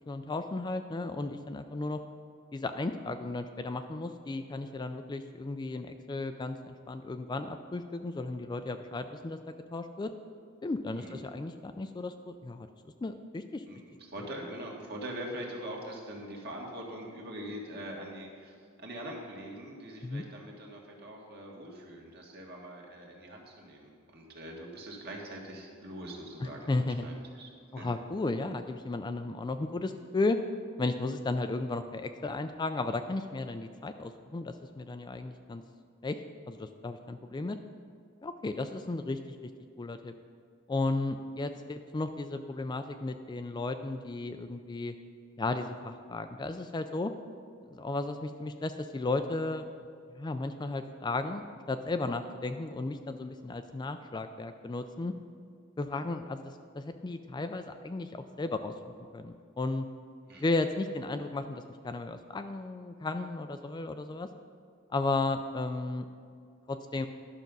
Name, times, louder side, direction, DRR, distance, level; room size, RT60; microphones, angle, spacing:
voice 1, 0.1-2.0 2.5-10.1 10.6-12.7 13.0-13.6 20.0-20.2 26.7-27.1 27.7-30.4 30.8-35.6 36.0-36.2 36.5-37.6 38.2-39.4 39.8-40.1 40.7-44.9 45.4-47.1 47.7-49.6 50.1-55.1 55.8-58.7 59.1-59.9 60.4-64.3 64.9-66.0 66.7-67.1, left 2 dB, 20° left, 8 dB, 0.3 m, -34 dB
voice 2, 13.7-27.9 60.3-60.5, right 1 dB, 50° right, -1 dB, 1.7 m, -43 dB
11.5 x 6.1 x 5.3 m, 2.2 s
head